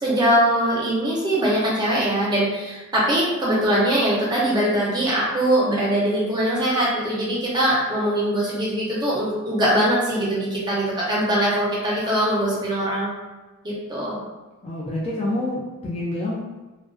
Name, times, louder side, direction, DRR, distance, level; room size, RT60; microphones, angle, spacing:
voice 1, 0.0-13.1 13.6-14.2, right 1 dB, 20° right, -6 dB, 0.6 m, -22 dB
voice 2, 14.6-16.4, left 1 dB, 25° left, -5 dB, 0.3 m, -27 dB
2.4 x 2.2 x 2.3 m, 1.2 s
head